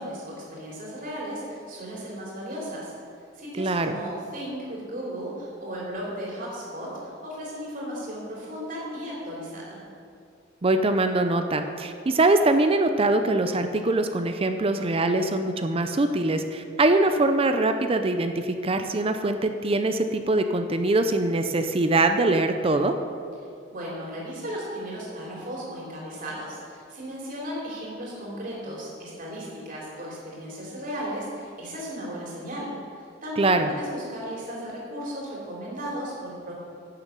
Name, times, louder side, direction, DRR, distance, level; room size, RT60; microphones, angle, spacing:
voice 1, 0.0-2.9 3.3-9.8 23.7-36.5, equal, 45° right, -4 dB, 3.1 m, -35 dB
voice 2, 3.6-3.9 10.6-22.9 33.4-33.7, right 2 dB, 30° right, 7 dB, 0.5 m, -23 dB
10.5 x 6.9 x 7.5 m, 2.4 s
head